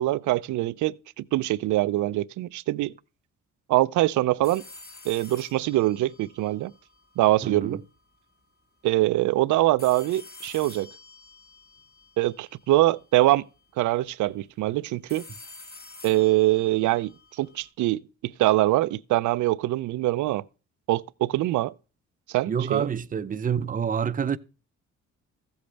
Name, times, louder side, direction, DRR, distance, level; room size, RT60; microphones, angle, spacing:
voice 1, 0.0-2.9 3.7-4.6 5.1-6.7 7.2-7.8 8.8-10.9 12.2-13.4 13.8-15.2 16.0-20.4 20.9-21.7 22.3-22.9, right 17 dB, 80° right, 0.5 m, -24 dB
sound 1, 4.4-7.5 9.8-12.9 15.1-17.7, left 3 dB, 30° left, 2.0 m, -48 dB
voice 2, 7.4-7.8 22.5-24.4, right 7 dB, 30° right, 0.6 m, -27 dB
14.5 x 8.0 x 3.3 m
cardioid pair, 90°, 30 cm